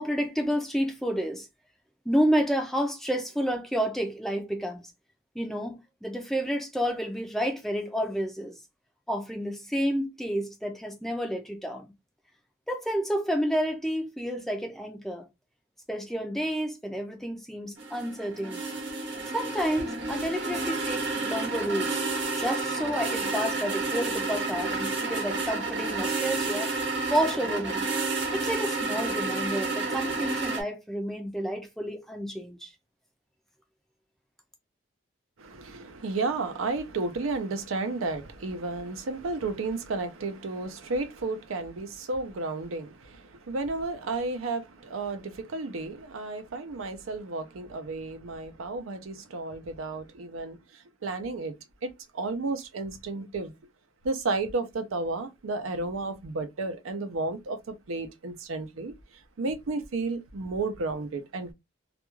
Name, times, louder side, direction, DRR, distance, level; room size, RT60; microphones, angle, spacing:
voice 1, 0.0-1.5 2.1-4.8 5.4-8.6 9.1-11.9 12.7-15.2 15.9-18.6 19.3-22.0 22.4-26.7 27.1-27.9 28.3-32.7, equal, ahead, 0.3 m, -30 dB
sound 1, 17.8-30.6, right 3 dB, 60° right, 0.8 m, -30 dB
voice 2, 35.4-51.5 51.8-53.5 54.0-58.9 59.4-61.5, right 3 dB, 85° right, 0.5 m, -32 dB
2.3 x 2.2 x 3.0 m
head